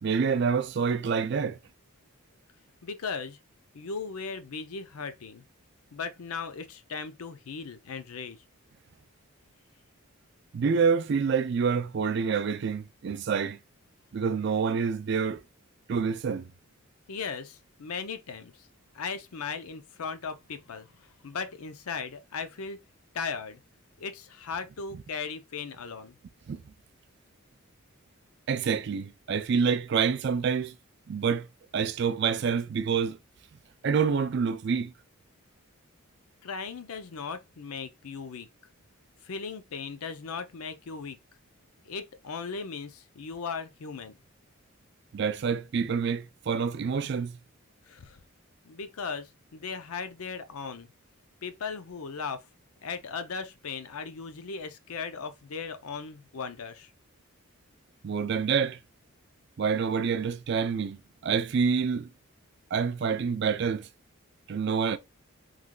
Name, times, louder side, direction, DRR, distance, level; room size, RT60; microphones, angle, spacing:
voice 1, 0.0-1.6 10.5-13.6 14.1-15.4 15.9-16.5 26.5-26.6 28.5-30.7 31.1-31.5 31.7-33.2 33.8-34.9 45.1-47.4 58.0-58.8 59.6-62.1 62.7-63.9 64.5-65.0, right 6 dB, 50° right, 0.3 m, -27 dB
voice 2, 2.8-3.4 3.7-5.4 5.9-8.4 17.1-18.7 18.9-22.8 23.1-23.6 24.0-26.2 36.4-38.5 39.2-41.2 41.8-44.2 47.8-48.2 48.6-50.9 51.4-52.5 52.8-56.9, left 5 dB, 90° left, 0.6 m, -37 dB
3.8 x 3.2 x 2.3 m
head